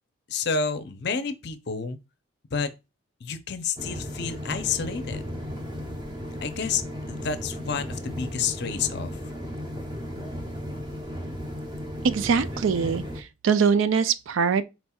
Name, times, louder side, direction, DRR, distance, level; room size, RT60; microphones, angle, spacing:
voice 1, 0.3-2.0 2.5-2.7 3.2-5.2 6.4-6.8 7.1-9.2, left 5 dB, 50° left, 0.5 m, -29 dB
sound 1, 3.8-13.2, equal, 20° right, 0.7 m, -35 dB
voice 2, 12.0-14.6, right 6 dB, 70° right, 0.4 m, -23 dB
4.3 x 4.2 x 2.3 m
head